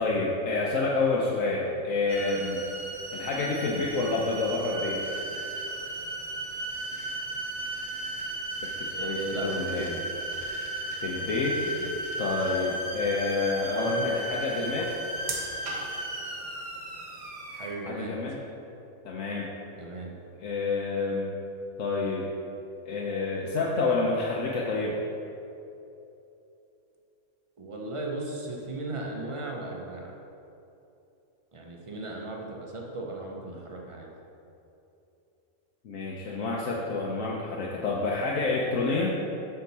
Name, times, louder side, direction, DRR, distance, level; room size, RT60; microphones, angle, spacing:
voice 1, 0.0-2.6 3.1-5.0 8.8-10.0 11.0-11.6 12.2-14.9 17.9-18.4 19.0-19.5 20.4-21.4 21.8-22.3 22.9-25.0 35.8-39.1, left 3 dB, 70° left, -3 dB, 1.1 m, -28 dB
sound 1, 2.1-17.7, right 1 dB, 90° right, 1.6 m, -35 dB
voice 2, 8.9-9.9 11.6-11.9 13.8-14.1 14.4-14.8 17.5-18.2 19.7-20.1 27.6-30.1 31.5-34.1, right 2 dB, 30° right, -1 dB, 0.6 m, -36 dB
6.7 x 5.9 x 4.0 m, 2.9 s
omnidirectional pair, 1.5 m